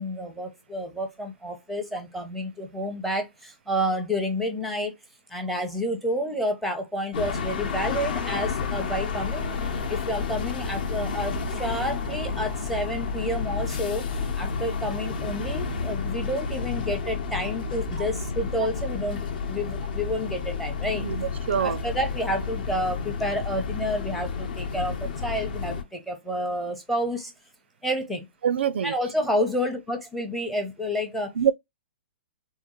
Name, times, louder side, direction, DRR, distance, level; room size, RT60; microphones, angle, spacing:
voice 1, 0.0-4.9 5.3-9.6 9.9-14.0 14.4-21.1 21.6-27.3 27.8-28.3 28.8-31.3, equal, ahead, 0.6 m, -29 dB
sound 1, 7.1-25.8, left 5 dB, 45° left, 0.9 m, -30 dB
voice 2, 20.9-21.8 28.4-28.9 31.4-31.5, right 8 dB, 65° right, 0.4 m, -25 dB
3.6 x 2.5 x 3.0 m
hypercardioid pair, 165°, 6 cm